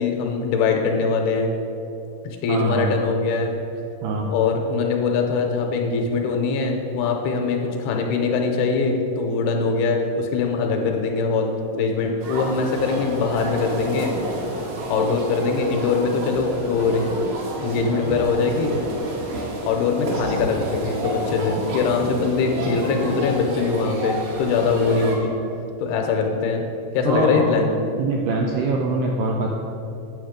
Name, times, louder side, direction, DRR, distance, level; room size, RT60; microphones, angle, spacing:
voice 1, 0.0-1.5 2.2-3.5 4.3-14.1 14.9-17.1 17.6-18.8 19.6-25.3 25.8-26.6 26.9-27.7, left 4 dB, 80° left, 2 dB, 2.5 m, -22 dB
voice 2, 2.5-3.0 4.0-4.3 27.1-27.6 28.0-29.5, right 3 dB, 80° right, 0 dB, 2.0 m, -23 dB
sound 1, 12.2-25.2, right 1 dB, 65° right, 3.0 m, -30 dB
9.2 x 7.4 x 5.0 m, 2.8 s
omnidirectional pair, 4.8 m